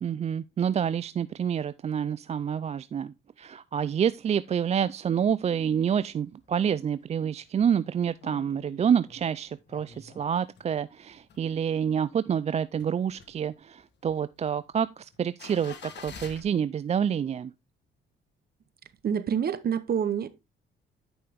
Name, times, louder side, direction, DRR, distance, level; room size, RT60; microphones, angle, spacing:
voice 1, 0.0-17.5, right 8 dB, 35° right, 0.3 m, -28 dB
sound 1, 5.9-6.6 7.0-7.1 7.3-10.8 11.1-12.1 12.5-16.4, left 6 dB, 60° left, 1.6 m, -48 dB
voice 2, 19.0-20.3, right 8 dB, 50° right, 0.9 m, -27 dB
9.6 x 5.5 x 3.5 m
cardioid pair, 90°, 20 cm